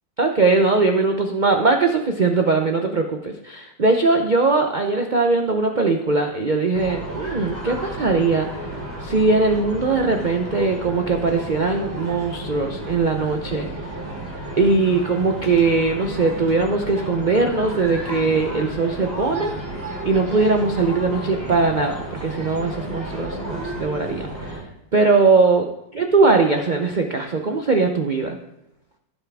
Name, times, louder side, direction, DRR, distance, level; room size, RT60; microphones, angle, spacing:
voice 1, 0.2-8.7 9.0-13.7 14.6-19.5 20.0-24.6 24.9-25.7 26.0-28.4, right 3 dB, 80° right, 4 dB, 0.4 m, -20 dB
sound 1, 6.7-24.6, right 1 dB, 10° right, 2.6 m, -32 dB
16.0 x 5.9 x 3.4 m, 0.87 s
omnidirectional pair, 2.0 m